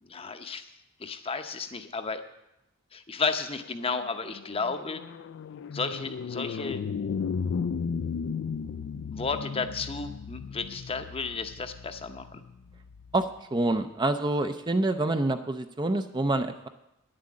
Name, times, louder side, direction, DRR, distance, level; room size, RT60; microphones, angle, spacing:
voice 1, 0.0-0.7 1.0-2.2 2.9-5.0 5.7-6.8 9.1-12.4, left 4 dB, 25° left, 8 dB, 0.7 m, -33 dB
sound 1, 3.7-13.2, left 6 dB, 60° left, 0.3 m, -35 dB
voice 2, 13.1-16.7, right 2 dB, 20° right, 8 dB, 0.5 m, -27 dB
10.0 x 7.6 x 8.5 m, 0.87 s
head